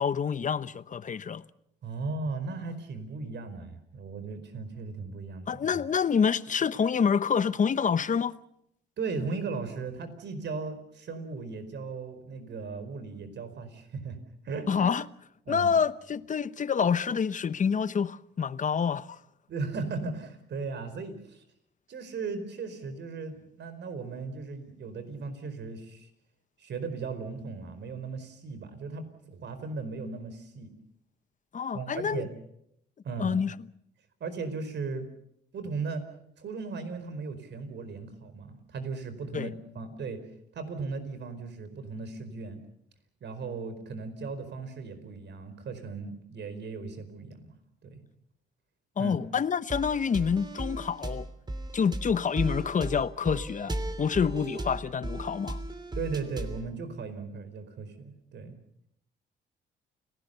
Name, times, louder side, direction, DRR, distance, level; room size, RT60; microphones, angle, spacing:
voice 1, 0.0-1.4 5.5-8.3 14.7-15.0 15.5-19.2 31.5-32.3 33.2-33.5 39.3-39.5 49.0-51.3 51.7-55.6, left 6 dB, 40° left, 1.0 m, -27 dB
voice 2, 1.8-5.8 9.0-14.2 14.4-14.9 15.4-15.7 19.5-21.4 21.9-26.1 26.6-30.7 31.7-32.3 33.0-33.4 34.2-35.1 35.5-36.0 36.4-40.2 40.5-42.6 43.2-47.5 47.8-48.0 49.0-49.2 56.0-58.6, right 4 dB, 60° right, 4.7 m, -37 dB
sound 1, 49.7-56.7, right 1 dB, 20° right, 3.1 m, -36 dB
29.5 x 18.5 x 6.9 m
cardioid pair, 90°, 20 cm